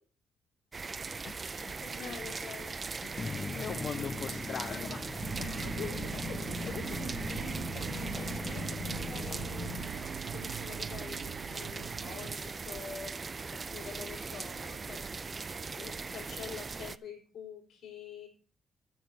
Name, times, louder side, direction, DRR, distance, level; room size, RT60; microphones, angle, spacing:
sound 1, 0.7-17.0, right 4 dB, 35° right, 0.4 m, -40 dB
voice 1, 1.2-2.2 3.0-4.9 5.4-5.7, left 7 dB, 60° left, 8 dB, 0.8 m, -42 dB
voice 2, 1.8-2.8 4.7-5.0 5.6-13.1 13.5-15.3 15.8-18.3, left 6 dB, 75° left, 0 dB, 4.2 m, -46 dB
sound 2, 3.2-9.9, left 4 dB, 35° left, 0.9 m, -40 dB
sound 3, 5.2-12.4, right 8 dB, 65° right, 0.8 m, -42 dB
9.5 x 7.3 x 4.8 m, 0.38 s
cardioid pair, 90°, 0 cm